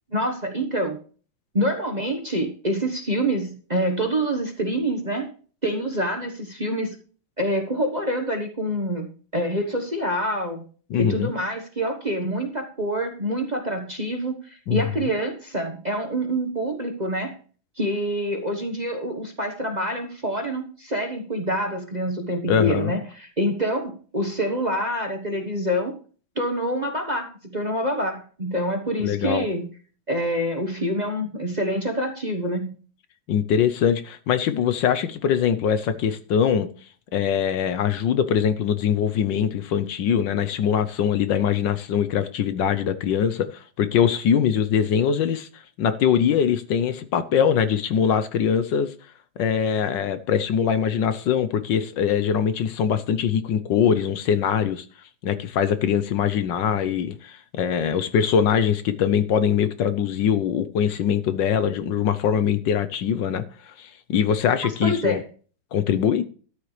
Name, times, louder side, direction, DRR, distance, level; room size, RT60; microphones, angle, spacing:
voice 1, 0.1-1.0 1.5-5.3 5.6-6.9 7.4-9.1 9.3-10.6 11.0-17.4 17.8-25.9 26.4-29.7 30.1-32.7 64.8-65.2, equal, 25° right, 1.1 m, -26 dB
voice 2, 10.9-11.3 14.7-14.8 22.5-23.0 29.0-29.5 33.3-36.7 37.1-48.9 49.4-54.8 55.2-65.2 65.7-66.2, left 8 dB, 70° left, 1.4 m, -22 dB
13.0 x 10.0 x 3.2 m
omnidirectional pair, 2.2 m